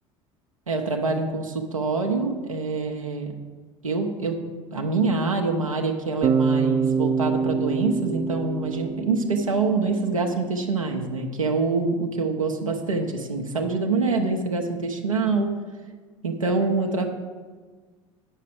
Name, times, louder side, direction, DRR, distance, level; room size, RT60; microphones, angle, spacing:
voice 1, 0.7-3.3 3.8-4.4 4.7-15.6 16.2-17.1, right 4 dB, 90° right, 2 dB, 0.9 m, -25 dB
Bass guitar, 6.2-10.3, right 5 dB, 30° right, 0.5 m, -25 dB
9.0 x 5.8 x 6.5 m, 1.4 s
figure-of-eight pair, 65°, 17 cm